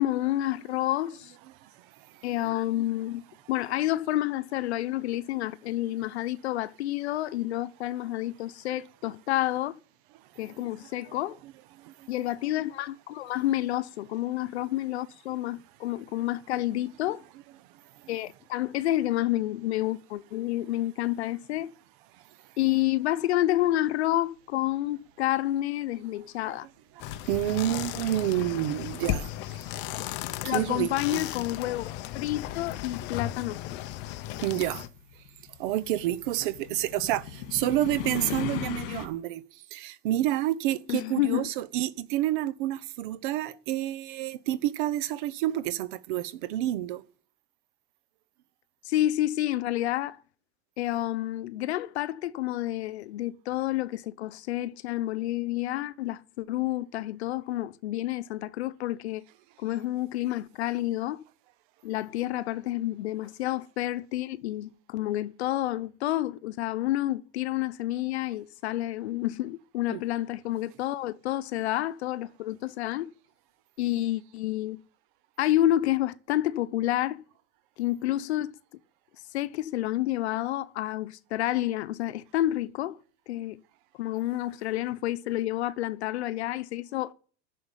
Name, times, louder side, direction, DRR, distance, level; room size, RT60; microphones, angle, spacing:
voice 1, 0.0-1.3 2.2-3.2 3.5-9.8 10.4-11.4 12.1-17.2 18.1-21.7 22.6-26.7 30.4-33.8 40.9-41.5 48.8-50.2 50.8-59.2 59.6-61.2 61.8-73.1 73.8-74.8 75.4-77.2 77.8-78.6 79.3-83.0 83.3-83.6 84.0-87.1, left 14 dB, 80° left, 0.9 m, -29 dB
voice 2, 1.3-2.3 10.4-12.1 17.2-17.6 18.0-18.3 26.4-29.6 30.4-31.2 34.4-34.8 35.6-47.0 69.9-70.0, right 13 dB, 50° right, 1.0 m, -30 dB
sound 1, 27.0-34.9, left 13 dB, 35° left, 0.8 m, -35 dB
sound 2, 34.4-39.1, left 10 dB, 55° left, 2.1 m, -38 dB
11.0 x 6.8 x 9.0 m
supercardioid pair, 160°, 32 cm